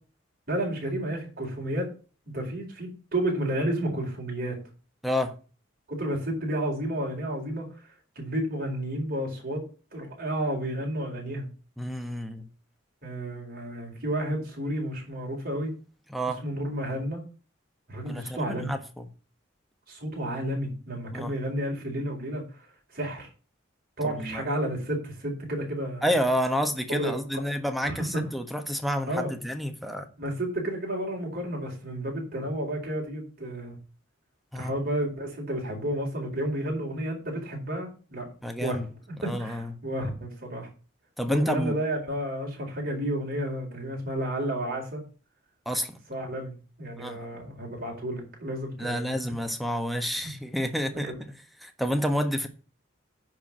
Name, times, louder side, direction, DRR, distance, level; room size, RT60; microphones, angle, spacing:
voice 1, 0.5-1.9 2.3-4.6 5.9-7.9 8.1-9.6 9.9-11.5 13.0-15.7 16.4-17.2 17.9-18.7 19.9-22.7 22.9-23.3 24.0-26.1 26.9-27.2 27.8-28.2 29.1-29.4 30.2-33.8 34.5-38.3 38.6-38.8 39.2-40.7 41.3-45.0 46.1-49.2 50.2-50.3, right 1 dB, 50° right, 4.8 m, -31 dB
voice 2, 5.0-5.4 11.8-12.5 16.1-16.4 18.1-18.8 21.1-21.3 24.0-24.4 26.0-30.1 34.5-34.7 38.4-38.9 39.2-39.7 41.2-41.7 45.6-46.0 47.0-47.2 48.8-51.3 51.6-52.5, equal, ahead, 1.3 m, -29 dB
10.0 x 4.8 x 7.6 m
head